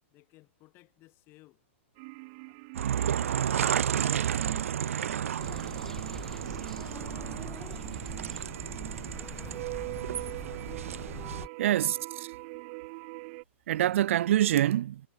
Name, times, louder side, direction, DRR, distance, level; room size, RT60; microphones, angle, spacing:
voice 1, 0.1-1.6 2.5-2.6 3.1-3.7 4.0-5.5 7.0-7.6 7.8-8.4 10.1-10.8 11.6-12.1, left 19 dB, 30° left, 6.3 m, -58 dB
sound 1, 2.0-13.4, right 32 dB, 40° right, 3.7 m, -43 dB
sound 2, 2.7-11.4, right 9 dB, 85° right, 0.8 m, -32 dB
sound 3, 5.4-11.5, left 3 dB, 5° left, 3.2 m, -44 dB
voice 2, 11.6-12.3 13.7-15.0, right 12 dB, 70° right, 0.4 m, -25 dB
hypercardioid pair, 150°, 7 cm